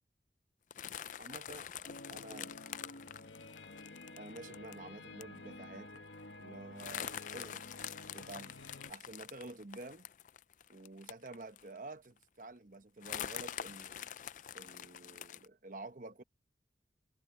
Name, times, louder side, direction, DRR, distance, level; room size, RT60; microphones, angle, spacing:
sound 1, 0.7-4.7 5.2-5.4 5.6-5.7 6.0-6.2 6.8-11.8 12.2-12.3 13.0-15.5, left 9 dB, 45° left, 0.4 m, -45 dB
voice 1, 1.2-2.5 4.2-6.1 6.4-7.7 8.1-8.5 8.9-10.1 10.7-14.1 14.5-16.2, right 2 dB, 45° right, 1.0 m, -49 dB
sound 2, 1.8-8.9, left 2 dB, 80° left, 1.8 m, -51 dB
head